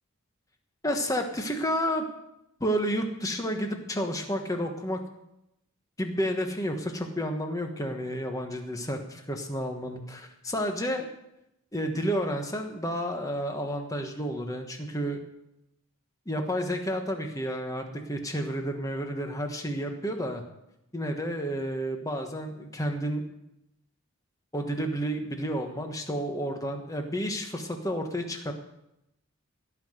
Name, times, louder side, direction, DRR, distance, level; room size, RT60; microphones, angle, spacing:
voice 1, 0.8-2.1 2.6-5.0 6.0-11.1 11.7-15.2 16.3-20.4 20.9-23.2 24.5-28.5, equal, 15° left, 4 dB, 1.3 m, -31 dB
17.0 x 5.8 x 7.9 m, 0.85 s
head